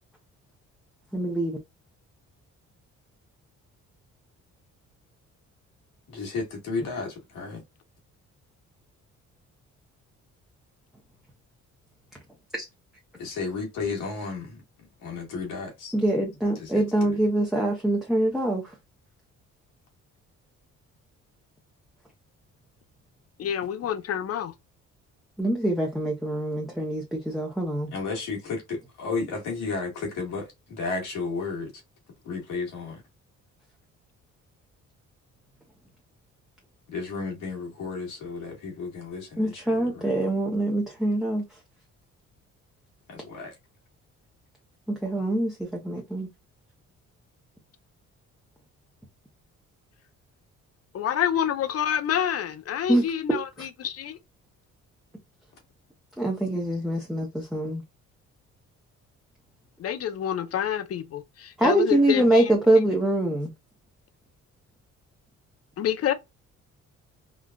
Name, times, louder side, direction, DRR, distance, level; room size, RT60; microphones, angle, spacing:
voice 1, 1.1-1.6 12.5-12.6 15.9-18.7 25.4-27.9 39.4-41.4 44.9-46.3 52.9-53.7 56.2-57.8 61.6-63.5, right 1 dB, ahead, 0.7 m, -24 dB
voice 2, 6.1-7.6 13.2-14.6 15.0-15.9 16.5-17.2 27.9-31.7 32.2-33.0 36.9-40.1 43.1-43.5, left 4 dB, 85° left, 1.7 m, -33 dB
voice 3, 23.4-24.5 50.9-54.2 59.8-62.5 65.8-66.1, left 10 dB, 55° left, 0.6 m, -28 dB
3.8 x 2.3 x 2.3 m
cardioid pair, 90°, 30 cm